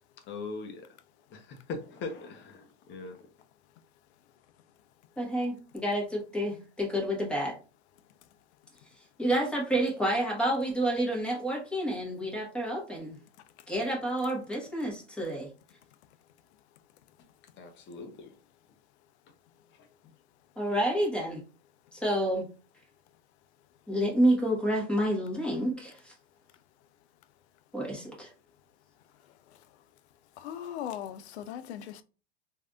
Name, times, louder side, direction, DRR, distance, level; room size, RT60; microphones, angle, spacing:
voice 1, 0.3-0.9 1.3-3.2 17.6-18.4 19.8-20.1, left 3 dB, 35° left, 0.8 m, -41 dB
voice 2, 5.2-7.5 9.2-13.2 13.7-15.5 20.6-21.4 21.9-22.5 23.9-26.1 27.7-28.3, right 1 dB, 5° left, 1.3 m, -29 dB
voice 3, 30.4-32.0, left 10 dB, 80° left, 0.5 m, -38 dB
3.2 x 2.7 x 2.4 m
hypercardioid pair, 110°, 33 cm